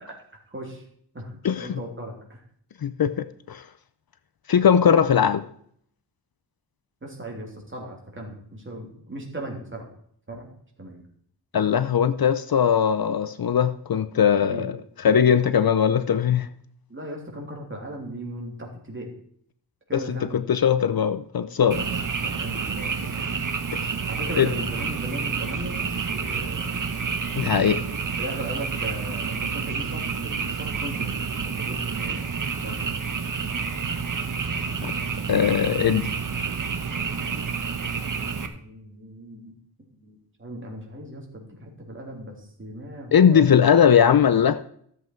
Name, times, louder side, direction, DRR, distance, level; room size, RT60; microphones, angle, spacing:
voice 1, 0.5-0.8 1.1-2.4 7.0-9.9 10.3-10.5 10.8-11.0 14.4-14.7 16.9-19.1 19.9-20.4 21.7-22.9 23.2-23.3 24.1-26.7 28.2-33.0 38.1-39.5 40.0-43.5, right 1 dB, 30° right, 0 dB, 3.2 m, -38 dB
voice 2, 1.4-1.8 2.8-3.6 4.5-5.4 11.5-14.7 15.0-16.5 19.9-21.8 23.7-23.9 24.4-24.5 27.4-27.8 34.8-34.9 35.3-36.1 43.1-44.6, left 8 dB, 55° left, 13 dB, 0.6 m, -20 dB
Frog, 21.7-38.5, right 5 dB, 45° right, 1.2 m, -29 dB
14.0 x 7.9 x 4.6 m, 0.64 s
wide cardioid pair, 125°, 42 cm